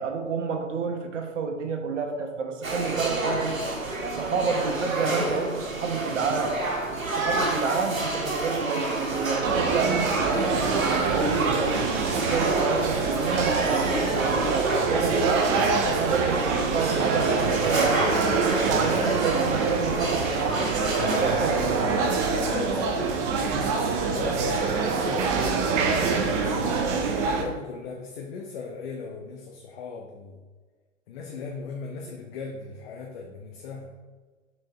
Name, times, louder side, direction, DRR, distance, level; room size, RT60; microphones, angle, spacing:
voice 1, 0.0-3.6 4.1-6.6 7.0-11.8 12.1-15.5 15.8-20.7 21.2-21.5, right 5 dB, 65° right, 4 dB, 1.2 m, -29 dB
sound 1, 2.6-22.3, right 2 dB, 85° right, 1.6 m, -29 dB
sound 2, 9.4-27.4, right 4 dB, 15° right, 0.3 m, -26 dB
voice 2, 22.2-26.6 27.2-30.4 31.1-33.9, left 4 dB, 50° left, 0 dB, 1.0 m, -37 dB
6.4 x 4.7 x 4.2 m, 1.4 s
figure-of-eight pair, 110°, 39 cm